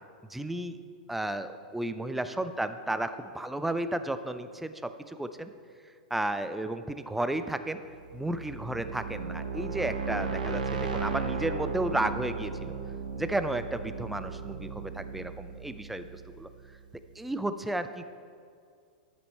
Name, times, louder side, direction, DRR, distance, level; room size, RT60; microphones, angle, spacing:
voice 1, 0.3-0.8 1.1-5.5 6.1-7.8 8.1-12.7 13.2-16.5 17.2-18.0, right 1 dB, 5° right, 10 dB, 0.4 m, -33 dB
sound 1, 8.0-16.8, right 5 dB, 75° right, 0.8 m, -36 dB
10.5 x 6.2 x 4.2 m, 2.3 s
figure-of-eight pair, 100°, 4 cm